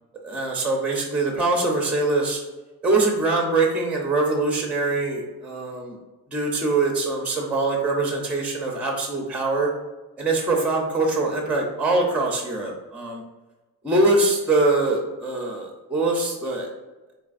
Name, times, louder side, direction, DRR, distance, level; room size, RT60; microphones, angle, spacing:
voice 1, 0.2-2.4 2.8-6.0 6.3-9.7 10.2-13.2 13.8-16.7, right 2 dB, 5° right, 1 dB, 0.5 m, -23 dB
4.0 x 3.3 x 2.5 m, 1.1 s
cardioid pair, 120°, 38 cm